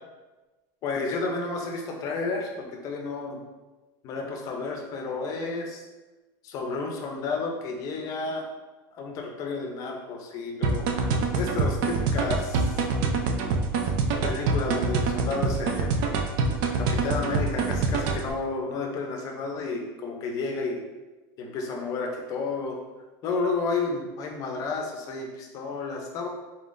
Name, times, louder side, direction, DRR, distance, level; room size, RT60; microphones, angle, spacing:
voice 1, 0.8-3.4 4.0-5.8 6.4-8.4 8.9-10.9 11.3-12.8 14.2-15.9 16.8-20.8 21.4-22.8 23.2-26.3, left 3 dB, 35° left, 1 dB, 0.6 m, -31 dB
sound 1, 10.6-18.3, right 4 dB, 50° right, 0.4 m, -25 dB
3.9 x 3.8 x 2.5 m, 1.2 s
supercardioid pair, 175°, 11 cm